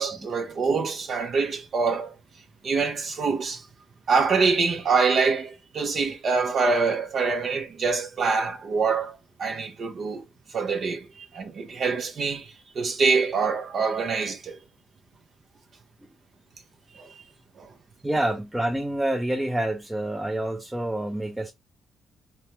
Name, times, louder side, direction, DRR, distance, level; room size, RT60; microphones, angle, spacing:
voice 1, 0.0-2.1 2.6-3.6 4.1-10.2 10.5-14.6 16.9-17.1 17.6-17.7, right 4 dB, 55° right, 0.7 m, -25 dB
voice 2, 18.0-21.5, right 1 dB, 10° right, 0.5 m, -27 dB
3.3 x 2.1 x 2.9 m
cardioid pair, 90°, 0 cm